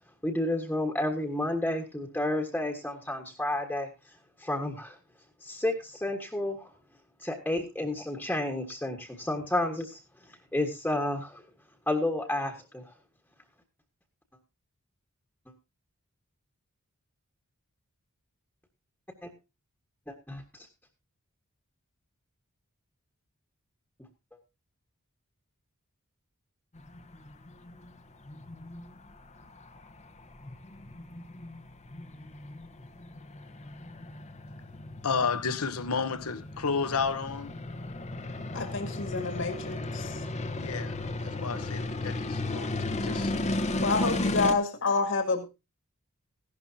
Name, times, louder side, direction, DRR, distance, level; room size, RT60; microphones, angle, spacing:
voice 1, 0.2-5.0 5.4-6.7 7.2-11.5 11.9-12.9 19.2-19.3 20.1-20.4, left 1 dB, 5° left, 1.5 m, -31 dB
sound 1, 26.8-44.5, left 2 dB, 30° left, 0.9 m, -35 dB
voice 2, 35.0-37.5 40.5-41.0 41.2-43.3, left 5 dB, 75° left, 1.0 m, -31 dB
voice 3, 38.5-40.2 43.8-45.5, left 3 dB, 60° left, 2.0 m, -28 dB
16.0 x 12.0 x 2.8 m
head